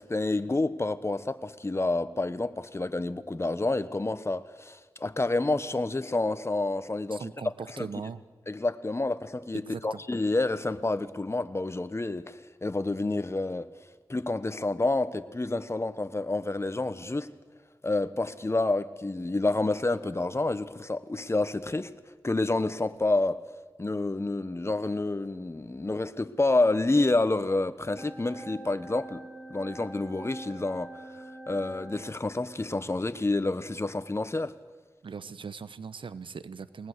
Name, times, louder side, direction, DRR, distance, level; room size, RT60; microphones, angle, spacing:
voice 1, 0.0-7.2 7.8-7.9 8.5-13.7 14.1-17.3 17.8-21.9 22.2-23.4 23.8-29.2 29.5-30.9 31.5-34.5, left 2 dB, 30° left, 1.1 m, -28 dB
voice 2, 7.1-8.2 9.5-10.0 35.0-36.9, right 5 dB, 85° right, 0.9 m, -39 dB
sound 1, 28.0-32.1, right 2 dB, 10° right, 2.2 m, -44 dB
20.5 x 20.0 x 8.2 m
cardioid pair, 45°, 8 cm